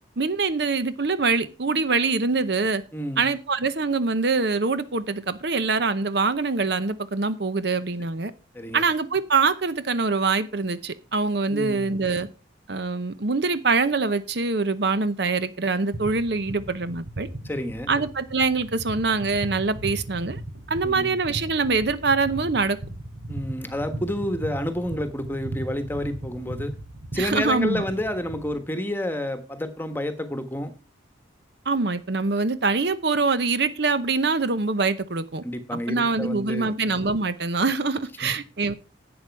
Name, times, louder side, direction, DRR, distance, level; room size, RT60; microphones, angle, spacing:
voice 1, 0.2-2.8 3.2-8.3 8.7-12.3 12.7-17.3 17.9-20.4 20.7-22.8 27.2-27.8 31.7-35.4 35.7-38.7, right 4 dB, 60° right, 0.8 m, -24 dB
voice 2, 2.9-3.2 8.5-8.8 11.5-12.0 17.4-17.9 20.8-21.2 23.3-26.7 27.1-30.7 35.4-36.8 38.2-38.3, left 1 dB, 10° left, 1.3 m, -29 dB
sound 1, 15.9-28.5, right 1 dB, 80° right, 5.1 m, -37 dB
11.0 x 8.7 x 4.7 m
head